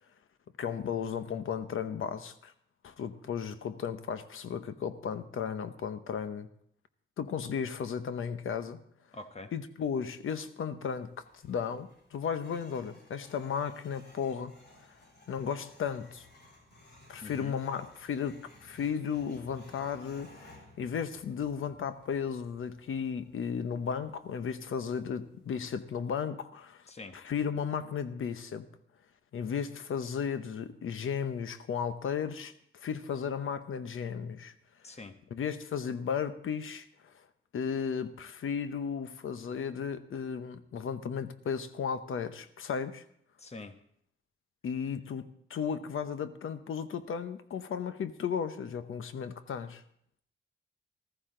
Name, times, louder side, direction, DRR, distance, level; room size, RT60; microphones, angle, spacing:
voice 1, 0.6-2.5 2.8-6.5 7.2-8.8 9.5-14.5 15.3-16.2 17.1-28.7 29.3-34.5 35.3-37.2 37.5-43.0 44.6-49.8, left 7 dB, 80° left, 11 dB, 0.9 m, -35 dB
voice 2, 9.1-9.5 17.2-17.6 26.9-27.2 34.8-35.2 43.4-43.8, left 3 dB, 30° left, 8 dB, 1.0 m, -44 dB
sound 1, 10.9-25.7, left 2 dB, 55° left, 3.7 m, -58 dB
14.5 x 14.0 x 3.8 m, 0.68 s
wide cardioid pair, 140°, 21 cm